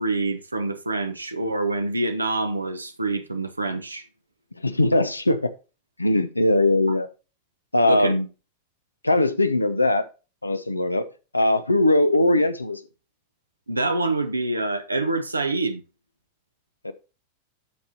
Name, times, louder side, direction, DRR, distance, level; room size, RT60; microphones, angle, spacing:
voice 1, 0.0-4.1 7.9-8.1 13.7-15.8, right 2 dB, 80° right, 1.0 m, -26 dB
voice 2, 4.6-5.5 6.0-7.1 7.7-8.3 9.0-10.0 10.4-11.1 11.3-12.8 16.8-16.9, left 2 dB, 85° left, 0.8 m, -20 dB
13.0 x 5.1 x 2.9 m
figure-of-eight pair, 90°, 0 cm